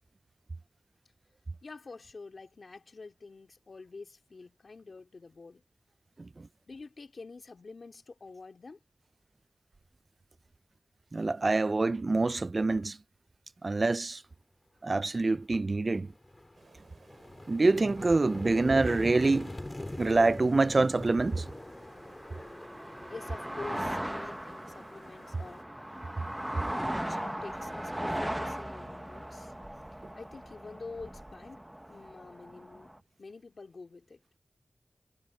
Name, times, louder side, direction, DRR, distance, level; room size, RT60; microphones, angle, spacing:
voice 1, 1.6-5.6 6.7-8.8 23.1-25.7 27.1-29.5 30.1-34.2, left 3 dB, 60° left, 3.4 m, -47 dB
voice 2, 11.1-13.0 13.6-14.2 14.8-16.1 17.5-19.5 20.0-21.5, right 3 dB, 45° right, 0.3 m, -26 dB
sound 1, 15.3-15.4 15.9-26.7, left 1 dB, 20° left, 3.0 m, -43 dB
sound 2, 16.6-25.6, right 4 dB, 80° right, 5.2 m, -59 dB
sound 3, 21.3-33.0, right 1 dB, 10° right, 0.7 m, -38 dB
wide cardioid pair, 95°, 0 cm